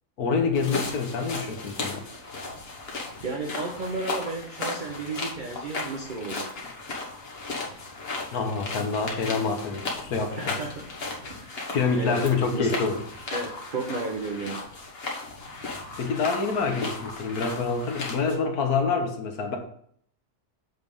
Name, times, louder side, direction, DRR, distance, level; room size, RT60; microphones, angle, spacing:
voice 1, 0.2-2.0 8.3-10.6 11.7-13.0 16.0-19.6, left 4 dB, 70° left, 4 dB, 1.5 m, -26 dB
sound 1, 0.5-18.3, left 3 dB, 40° left, 1.4 m, -35 dB
voice 2, 3.2-6.5 10.4-10.8 11.2-11.6 11.9-12.2 12.5-12.7 13.3-14.6, right 3 dB, 40° right, 0 dB, 0.8 m, -33 dB
8.1 x 3.5 x 5.3 m, 0.63 s
omnidirectional pair, 1.7 m